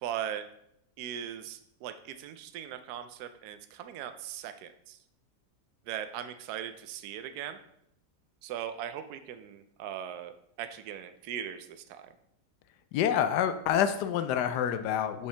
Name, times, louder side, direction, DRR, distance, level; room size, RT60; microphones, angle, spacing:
voice 1, 0.0-0.5 1.0-5.0 5.9-7.6 8.4-12.1, right 10 dB, 75° right, 10 dB, 1.1 m, -39 dB
voice 2, 12.9-15.3, left 9 dB, 85° left, 10 dB, 1.2 m, -27 dB
6.4 x 5.5 x 3.3 m, 0.74 s
omnidirectional pair, 1.8 m